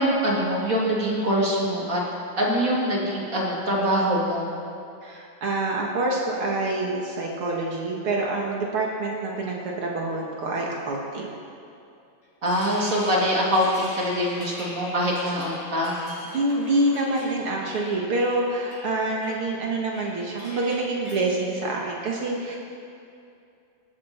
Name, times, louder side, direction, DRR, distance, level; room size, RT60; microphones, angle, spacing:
voice 1, 0.0-2.0 2.4-4.4 9.4-9.5 12.4-16.0, equal, 25° right, -4 dB, 1.9 m, -24 dB
voice 2, 5.0-11.3 16.3-22.6, right 2 dB, 70° right, -2 dB, 1.3 m, -26 dB
sound 1, 12.2-21.2, left 1 dB, 25° left, 4.6 m, -42 dB
24.5 x 13.0 x 4.4 m, 2.6 s
omnidirectional pair, 5.0 m